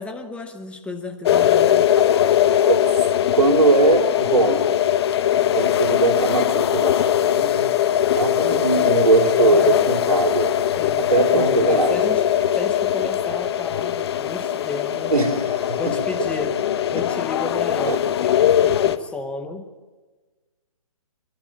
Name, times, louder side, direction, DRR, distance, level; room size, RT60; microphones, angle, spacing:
voice 1, 0.0-1.9 8.4-8.9 9.5-9.8 10.7-12.2 12.6-15.2 15.8-16.6 16.8-19.7, left 3 dB, 5° left, 5 dB, 0.9 m, -32 dB
sound 1, 1.2-19.0, left 10 dB, 45° left, 1.0 m, -20 dB
voice 2, 3.3-4.6 5.5-7.7 8.1-10.6 11.0-11.9 15.1-15.9 17.9-18.0, right 3 dB, 80° right, 4 dB, 3.4 m, -21 dB
27.0 x 12.0 x 8.8 m, 1.3 s
hypercardioid pair, 150°, 19 cm